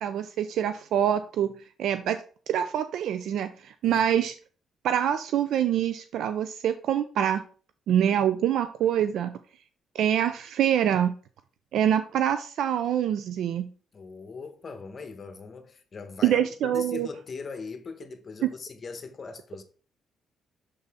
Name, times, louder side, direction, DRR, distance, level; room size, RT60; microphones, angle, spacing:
voice 1, 0.0-2.2 2.5-4.3 4.8-7.4 7.9-9.4 9.9-11.1 11.7-13.7 16.2-17.1 18.4-18.5, right 10 dB, 75° right, 0.4 m, -25 dB
voice 2, 13.9-19.6, left 4 dB, 40° left, 1.1 m, -40 dB
6.8 x 4.1 x 3.6 m
cardioid pair, 90°, 0 cm